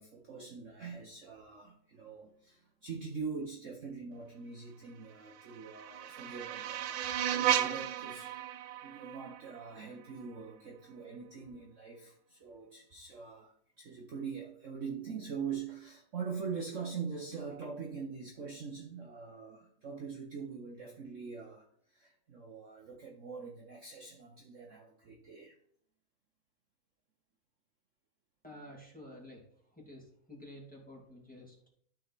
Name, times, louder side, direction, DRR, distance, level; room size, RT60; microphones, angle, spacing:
voice 1, 0.0-8.3 8.8-25.6, right 5 dB, 50° right, -1 dB, 1.2 m, -43 dB
sound 1, 5.2-10.2, right 11 dB, 80° right, 1.4 m, -35 dB
voice 2, 28.4-29.4 29.7-31.7, left 1 dB, 5° left, -3 dB, 2.3 m, -51 dB
12.5 x 4.5 x 4.1 m, 0.65 s
omnidirectional pair, 2.0 m